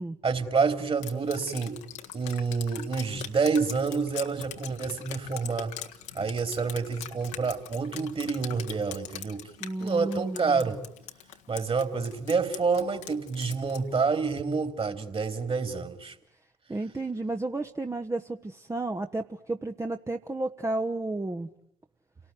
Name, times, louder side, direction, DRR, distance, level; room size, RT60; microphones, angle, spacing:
voice 1, 0.2-1.8 2.1-5.7 6.1-9.5 9.8-10.8 11.5-16.1, right 5 dB, 35° right, 9 dB, 3.7 m, -28 dB
Drip, 1.0-13.9, left 11 dB, 75° left, 1.7 m, -42 dB
voice 2, 9.6-10.7 16.7-21.5, right 2 dB, 20° right, 5 dB, 1.3 m, -32 dB
29.5 x 19.0 x 9.5 m, 0.74 s
figure-of-eight pair, 45°, 16 cm